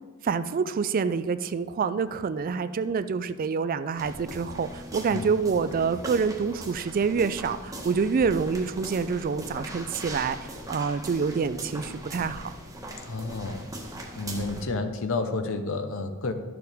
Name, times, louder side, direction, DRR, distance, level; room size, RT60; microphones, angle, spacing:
voice 1, 0.2-10.4 10.7-12.5, right 5 dB, 40° right, 13 dB, 0.3 m, -27 dB
sound 1, 4.0-14.6, right 1 dB, 15° right, 1.2 m, -40 dB
voice 2, 13.1-13.7 14.1-16.3, left 3 dB, 65° left, 8 dB, 0.8 m, -30 dB
11.5 x 6.8 x 3.5 m, 1.4 s
head